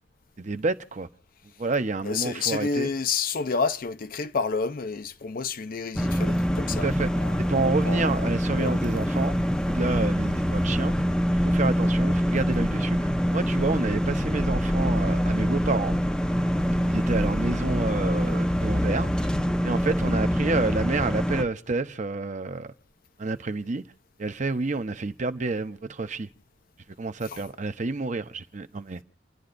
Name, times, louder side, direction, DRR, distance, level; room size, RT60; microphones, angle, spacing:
voice 1, 0.4-1.1 1.6-2.9 6.8-7.1 7.4-9.4 9.7-10.9 11.4-13.0 13.3-16.0 16.9-19.1 19.6-22.7 23.2-23.8 24.2-26.3 27.0-29.0, right 3 dB, 45° right, 0.7 m, -29 dB
voice 2, 2.0-8.8 9.8-10.1 27.2-27.5, left 4 dB, 55° left, 0.6 m, -30 dB
sound 1, 6.0-21.4, equal, 5° left, 0.6 m, -25 dB
29.5 x 10.5 x 2.6 m
head